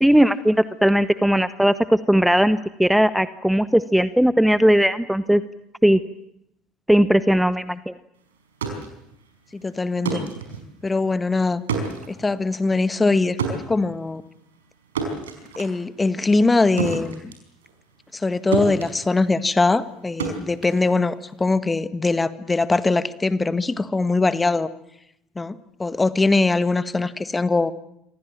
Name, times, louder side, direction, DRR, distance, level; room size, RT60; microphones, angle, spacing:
voice 1, 0.0-5.4 5.8-6.0 6.9-7.9, equal, 5° right, 14 dB, 1.0 m, -18 dB
sound 1, 8.4-18.3 18.5-21.5, right 5 dB, 80° right, 5.1 m, -31 dB
voice 2, 9.5-10.2 10.8-11.6 12.1-14.2 15.6-17.3 18.1-24.7 25.3-27.7, left 3 dB, 20° left, 13 dB, 1.6 m, -22 dB
27.5 x 25.0 x 7.6 m, 0.80 s
figure-of-eight pair, 60°, 0 cm